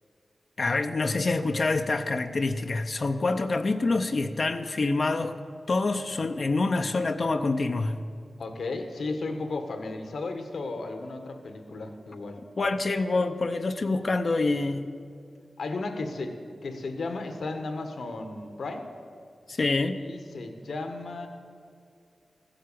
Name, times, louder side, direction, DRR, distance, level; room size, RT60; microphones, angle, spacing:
voice 1, 0.6-5.3 5.7-8.0 12.6-14.8 19.5-20.0, left 3 dB, 60° left, 6 dB, 0.6 m, -26 dB
voice 2, 8.4-12.4 15.6-16.4 16.6-18.9 20.0-21.3, left 3 dB, 80° left, 6 dB, 1.3 m, -34 dB
14.5 x 7.8 x 8.4 m, 2.3 s
cardioid pair, 50°, 0 cm